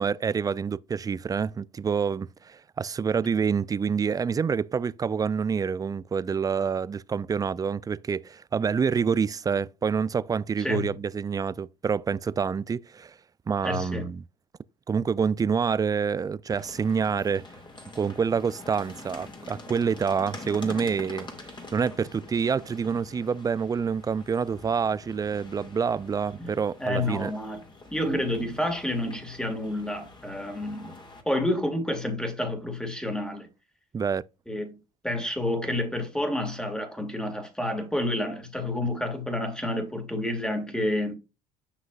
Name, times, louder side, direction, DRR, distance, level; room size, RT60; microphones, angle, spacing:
voice 1, 0.0-13.1 13.5-14.2 14.9-17.4 17.9-21.3 21.7-27.3 33.9-34.2, right 6 dB, 20° right, 0.3 m, -27 dB
voice 2, 10.6-10.9 13.6-14.1 26.4-26.5 26.8-27.6 27.9-31.0 31.3-33.5 34.5-34.8 35.0-41.1, left 1 dB, 5° left, 2.0 m, -29 dB
sound 1, 16.5-31.2, left 2 dB, 25° left, 2.1 m, -45 dB
7.6 x 5.9 x 2.4 m
hypercardioid pair, 70°, 18 cm